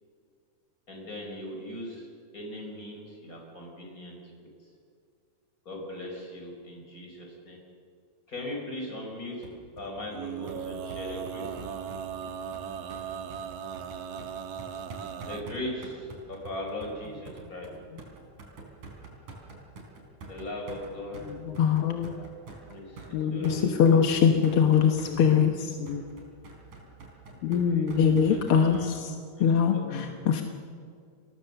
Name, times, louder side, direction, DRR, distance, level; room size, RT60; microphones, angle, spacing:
voice 1, 0.9-2.1 2.3-4.5 5.7-7.6 8.3-9.5 9.8-11.6 15.2-17.7 20.3-21.2 22.6-23.6 23.9-24.0 27.5-27.9 28.3-29.0 29.3-30.3, left 1 dB, 25° left, 0 dB, 5.9 m, -39 dB
sound 1, 9.4-28.9, right 3 dB, 85° right, 5.5 m, -46 dB
Male singing, 10.1-15.4, right 7 dB, 60° right, 2.1 m, -38 dB
voice 2, 21.2-22.6 23.1-24.4 24.8-25.5 25.8-26.0 27.4-28.2 29.0-29.2 29.6-30.1, left 6 dB, 85° left, 8 dB, 2.6 m, -32 dB
voice 3, 23.4-25.5 28.0-29.1 29.4-30.4, left 7 dB, 55° left, 4 dB, 1.8 m, -22 dB
29.5 x 20.5 x 6.8 m, 2.3 s
omnidirectional pair, 3.4 m